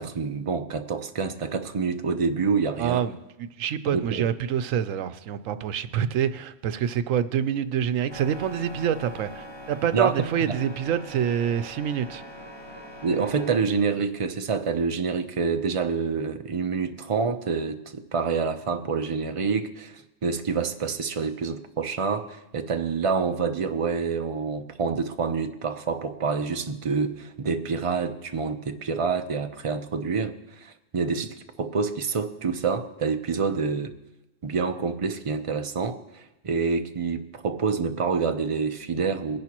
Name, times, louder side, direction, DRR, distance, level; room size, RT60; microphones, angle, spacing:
voice 1, 0.0-3.0 3.8-4.3 9.9-10.1 10.5-10.6 13.0-33.9 34.4-39.4, right 5 dB, 35° right, 7 dB, 0.5 m, -27 dB
voice 2, 2.8-12.2, right 9 dB, 90° right, 12 dB, 1.0 m, -26 dB
sound 1, 8.1-13.6, equal, 20° left, 1.3 m, -42 dB
21.0 x 10.5 x 3.0 m, 0.95 s
omnidirectional pair, 1.3 m